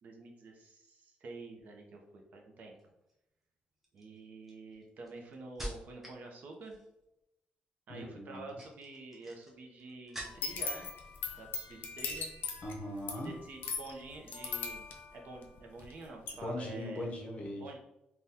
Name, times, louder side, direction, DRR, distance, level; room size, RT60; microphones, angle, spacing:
voice 1, 0.0-2.7 3.9-6.8 7.9-10.9 11.4-12.3 13.1-17.1 17.6-17.8, right 3 dB, 55° right, 1 dB, 0.6 m, -48 dB
sound 1, 2.8-3.1 3.8-6.2 6.5-7.0 8.3-10.7 11.0-11.7 12.0-12.2, right 1 dB, 5° right, 0.6 m, -47 dB
voice 2, 7.9-8.6 12.6-13.3 16.3-17.6, left 1 dB, 40° left, 0 dB, 0.6 m, -40 dB
sound 2, 10.2-15.9 16.3-16.4, left 5 dB, 85° left, 0.5 m, -39 dB
3.5 x 2.2 x 2.7 m, 0.87 s
wide cardioid pair, 165°, 3 cm